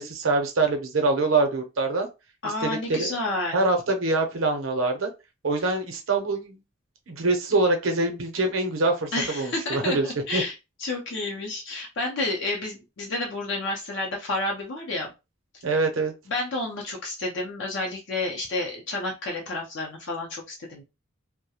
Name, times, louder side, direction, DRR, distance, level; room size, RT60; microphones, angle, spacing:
voice 1, 0.0-2.1 2.6-3.2 3.5-5.1 5.4-6.6 7.1-10.1 10.3-10.4 15.6-16.1, right 3 dB, 75° right, 4 dB, 0.6 m, -24 dB
voice 2, 2.4-3.6 9.1-10.5 10.8-15.1 16.3-20.8, left 2 dB, 60° left, -1 dB, 0.5 m, -30 dB
2.3 x 2.1 x 2.8 m, 0.26 s
head